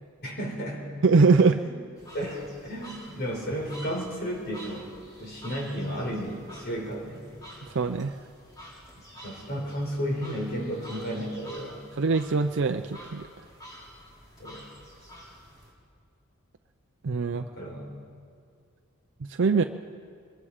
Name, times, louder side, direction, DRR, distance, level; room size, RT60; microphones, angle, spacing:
voice 1, 0.2-1.0 1.4-1.8 2.1-4.9 5.2-7.2 8.9-11.8 14.4-14.7 17.3-17.9, equal, 50° left, 0 dB, 4.6 m, -33 dB
voice 2, 1.0-1.6 7.7-8.2 12.0-13.3 17.0-17.5 19.3-19.6, right 4 dB, 60° right, 6 dB, 0.5 m, -22 dB
sound 1, 2.0-15.7, equal, 15° left, 3.8 m, -48 dB
24.0 x 22.0 x 5.0 m, 2.3 s
head